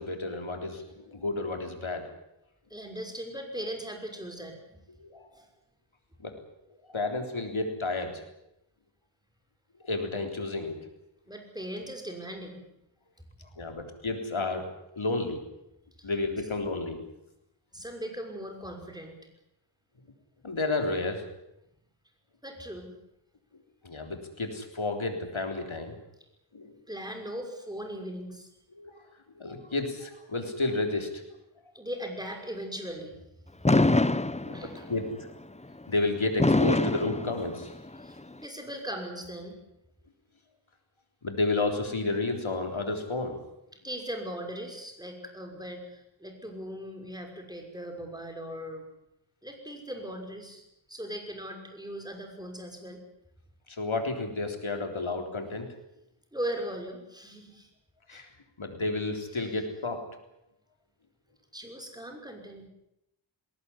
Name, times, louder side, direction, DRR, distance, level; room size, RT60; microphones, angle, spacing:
voice 1, 0.0-2.1 5.0-5.3 6.2-6.4 6.9-8.2 9.8-10.8 13.6-14.7 15.0-15.4 16.0-17.0 20.4-21.2 23.8-26.0 26.5-26.7 28.8-28.9 29.3-31.2 34.4-35.1 35.9-37.7 41.2-43.4 53.7-55.7 58.1-58.3 58.6-60.1, left 2 dB, 90° left, 4 dB, 3.7 m, -31 dB
voice 2, 2.7-4.8 5.3-5.5 11.3-12.6 16.0-16.1 17.7-19.2 22.4-22.9 26.9-28.5 31.7-33.2 34.5-34.9 38.0-39.5 43.8-48.8 49.4-53.0 56.3-57.7 58.1-58.2 61.5-62.7, equal, 10° right, 3 dB, 6.0 m, -39 dB
Fireworks, 33.6-35.0 36.4-37.9, left 2 dB, 15° left, 0.8 m, -24 dB
20.5 x 18.0 x 9.9 m, 0.84 s
wide cardioid pair, 60°, 46 cm